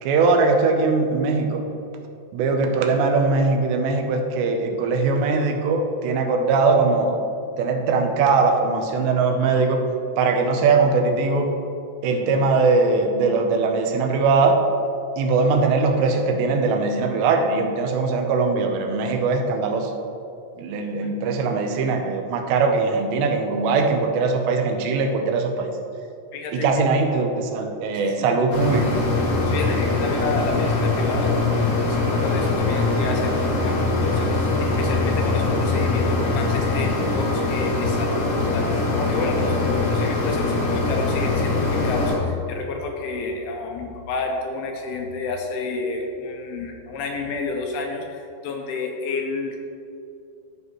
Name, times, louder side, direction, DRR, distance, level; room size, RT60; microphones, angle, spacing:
voice 1, 0.0-1.6 2.3-7.2 7.6-9.8 10.2-11.5 12.0-14.6 15.2-19.9 20.6-25.7 26.5-28.9, right 4 dB, 90° right, 3 dB, 3.0 m, -21 dB
voice 2, 26.3-26.9 27.9-28.2 29.4-31.7 32.1-49.6, left 3 dB, 80° left, 1 dB, 2.4 m, -30 dB
sound 1, 28.5-42.2, left 3 dB, 60° left, 1.9 m, -22 dB
13.5 x 5.4 x 3.1 m, 2.6 s
omnidirectional pair, 4.9 m